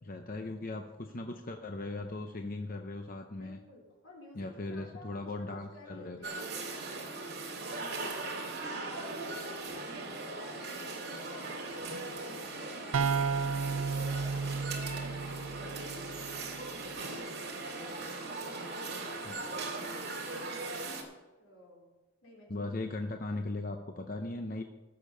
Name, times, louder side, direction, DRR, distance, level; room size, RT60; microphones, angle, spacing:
voice 1, 0.0-3.6 4.4-6.2 19.3-19.4 22.5-24.6, left 2 dB, 45° left, 5 dB, 0.7 m, -38 dB
voice 2, 3.3-10.2 10.7-13.8 14.2-17.2 17.7-20.0 21.4-21.9 22.2-22.7, left 1 dB, 85° left, -2 dB, 3.6 m, -54 dB
sound 1, 6.2-21.0, right 3 dB, 50° right, 2.1 m, -39 dB
sound 2, 12.9-16.6, right 5 dB, 85° right, 0.5 m, -33 dB
15.0 x 6.8 x 5.5 m, 1.2 s
head